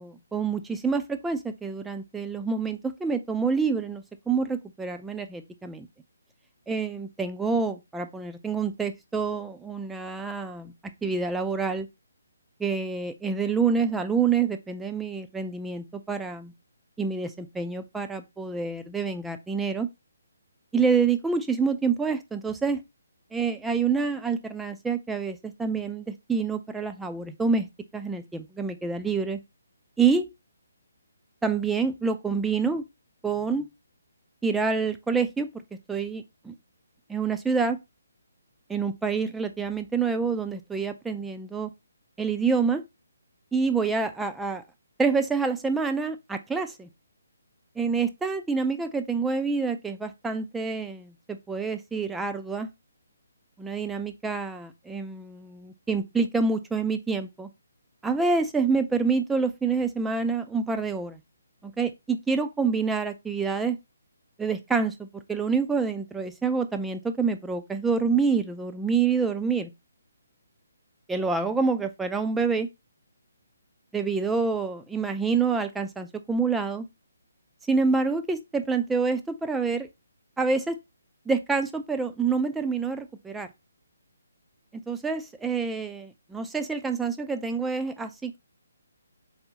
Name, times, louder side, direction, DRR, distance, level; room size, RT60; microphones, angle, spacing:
voice 1, 0.0-5.9 6.7-11.9 12.6-16.5 17.0-19.9 20.7-22.8 23.3-27.7 27.9-29.4 30.0-30.3 31.4-32.8 33.2-33.7 34.4-35.6 35.9-36.5 37.1-37.8 38.7-41.7 42.2-42.8 43.5-44.6 45.0-46.9 47.8-52.7 53.6-57.5 58.0-61.2 61.6-63.8 64.4-69.7 71.1-72.7 73.9-76.9 77.7-79.9 80.4-80.8 81.3-83.5 84.9-88.4, right 5 dB, 5° right, 0.4 m, -27 dB
3.5 x 3.5 x 2.8 m
figure-of-eight pair, 140°, 0 cm